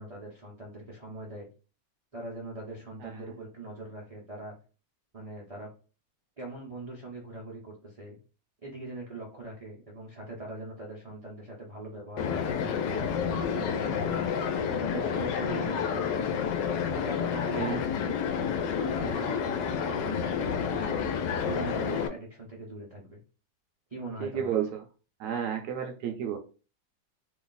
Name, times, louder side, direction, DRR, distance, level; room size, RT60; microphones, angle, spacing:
voice 1, 0.0-1.5 2.1-4.5 5.1-5.7 6.4-8.2 8.6-16.4 16.8-17.8 18.7-23.2 23.9-24.5, right 2 dB, 50° right, -5 dB, 0.4 m, -42 dB
sound 1, 12.2-22.1, left 7 dB, 75° left, 1.2 m, -29 dB
voice 2, 17.3-17.8 24.2-24.8 25.2-26.4, right 8 dB, 70° right, 4 dB, 1.0 m, -32 dB
3.0 x 2.4 x 3.8 m, 0.36 s
omnidirectional pair, 2.0 m